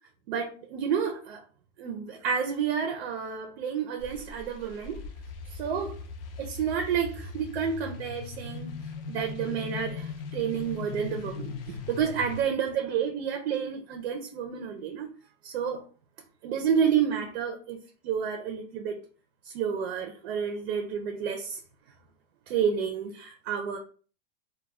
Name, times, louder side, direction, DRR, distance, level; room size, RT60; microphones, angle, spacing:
voice 1, 0.3-1.4 1.8-5.0 5.5-6.0 6.4-8.8 9.1-15.1 15.4-15.9 16.4-17.8 18.0-19.0 19.4-21.6 22.5-23.8, right 7 dB, 60° right, 0.5 m, -30 dB
sound 1, 4.0-12.4, left 4 dB, 55° left, 0.5 m, -39 dB
2.3 x 2.2 x 3.1 m
supercardioid pair, 170°, 35 cm